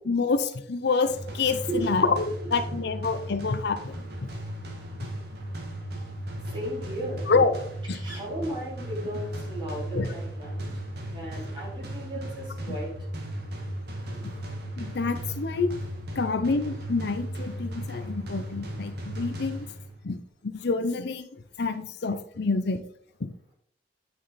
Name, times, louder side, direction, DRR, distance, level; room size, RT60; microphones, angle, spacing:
voice 1, 0.0-3.9 7.3-7.5 7.9-8.0 9.9-10.1 14.8-15.7 16.2-19.7 20.0-20.2 20.6-21.3 21.6-22.8 23.2-23.3, left 4 dB, 65° left, 10 dB, 0.6 m, -27 dB
sound 1, 1.1-20.0, right 1 dB, 60° right, 1.8 m, -36 dB
voice 2, 1.7-2.1 2.4-2.8 6.5-7.4 7.9-10.6 11.1-12.9 14.1-14.3, right 1 dB, 25° right, -5 dB, 4.1 m, -35 dB
9.1 x 6.3 x 4.1 m, 0.65 s
head